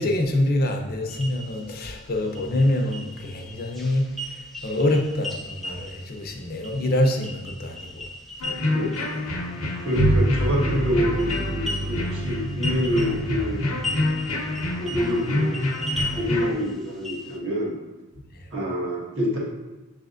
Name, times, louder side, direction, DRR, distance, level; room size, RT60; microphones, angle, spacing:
voice 1, 0.0-4.3 4.6-8.0 18.3-18.5, left 1 dB, 45° left, 3 dB, 0.6 m, -25 dB
sound 1, 1.1-17.4, left 1 dB, ahead, 0.4 m, -38 dB
sound 2, 8.4-16.5, left 1 dB, 85° left, 0.8 m, -27 dB
voice 2, 9.8-13.6 14.8-15.6 16.1-17.8 18.5-19.4, equal, 65° right, -5 dB, 1.5 m, -26 dB
Bowed string instrument, 10.0-15.6, right 2 dB, 45° right, 0.6 m, -29 dB
6.4 x 3.2 x 2.5 m, 1.1 s
head